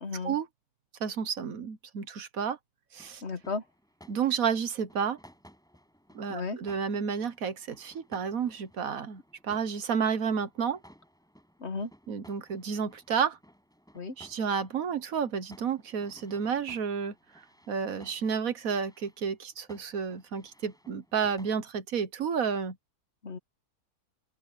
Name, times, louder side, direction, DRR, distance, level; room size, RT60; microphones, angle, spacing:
voice 1, 0.0-0.4 3.2-3.6 6.3-6.6 11.6-11.9 13.9-14.1 23.2-23.4, left 4 dB, 50° left, 1.4 m, -34 dB
voice 2, 1.0-2.6 2.9-3.2 4.1-5.2 6.1-9.2 9.5-10.8 12.1-13.4 14.2-17.1 17.7-22.7, right 6 dB, 65° right, 1.5 m, -31 dB
sound 1, 2.9-21.5, equal, ahead, 6.0 m, -58 dB
open air
omnidirectional pair, 1.6 m